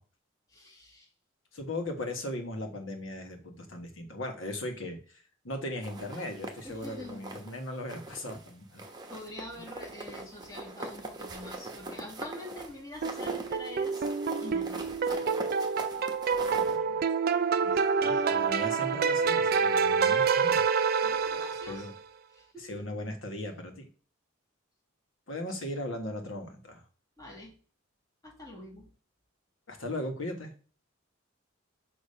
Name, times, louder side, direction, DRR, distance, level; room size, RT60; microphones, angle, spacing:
voice 1, 0.5-1.1 6.6-7.2 9.1-14.1 14.4-15.2 17.6-18.3 21.0-21.9 22.3-22.8 27.2-27.6 28.2-28.9, left 1 dB, 20° left, -2 dB, 1.9 m, -45 dB
voice 2, 1.5-8.8 9.6-9.7 16.5-17.0 18.0-20.6 21.7-21.9 22.6-23.9 25.3-26.8 29.7-30.5, left 1 dB, 70° left, 4 dB, 1.4 m, -38 dB
sound 1, 5.8-7.6 7.9-8.5 8.8-16.8, right 2 dB, 20° right, 1.0 m, -42 dB
sound 2, 13.0-21.9, right 5 dB, 50° right, 0.4 m, -27 dB
6.8 x 2.9 x 5.5 m, 0.41 s
head